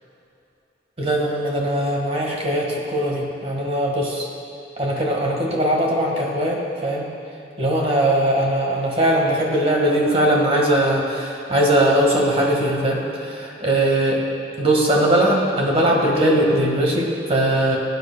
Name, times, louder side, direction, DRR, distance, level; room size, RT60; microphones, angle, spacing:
voice 1, 1.0-4.3 4.8-7.1 7.6-14.2 14.6-17.8, right 1 dB, 35° right, -1 dB, 1.5 m, -20 dB
18.0 x 9.4 x 2.2 m, 2.7 s
head